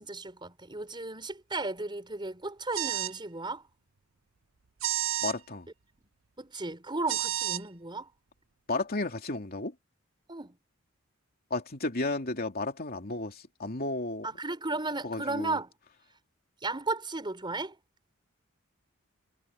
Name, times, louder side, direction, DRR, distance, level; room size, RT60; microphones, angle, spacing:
voice 1, 0.0-3.6 6.4-8.1 10.3-10.6 14.2-15.7 16.6-17.8, right 3 dB, 20° right, 5.0 m, -35 dB
sound 1, 2.7-3.2 4.8-5.4 7.1-7.6, right 13 dB, 70° right, 0.7 m, -30 dB
voice 2, 5.2-5.7 8.7-9.7 11.5-14.3 15.0-15.6, left 2 dB, 45° left, 2.9 m, -33 dB
head